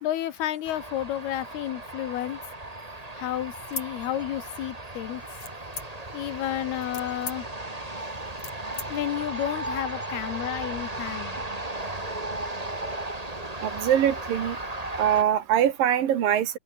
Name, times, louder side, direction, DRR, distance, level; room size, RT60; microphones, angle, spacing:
voice 1, 0.0-2.4 3.1-5.2 6.1-7.5 8.9-11.4, left 13 dB, 75° left, 3.3 m, -31 dB
sound 1, 0.7-15.2, right 2 dB, 10° right, 2.6 m, -36 dB
sound 2, 3.7-4.7 5.4-6.2 6.7-8.9, left 5 dB, 40° left, 4.9 m, -39 dB
voice 2, 13.6-14.6 15.0-16.6, right 10 dB, 65° right, 3.5 m, -23 dB
open air
omnidirectional pair, 4.6 m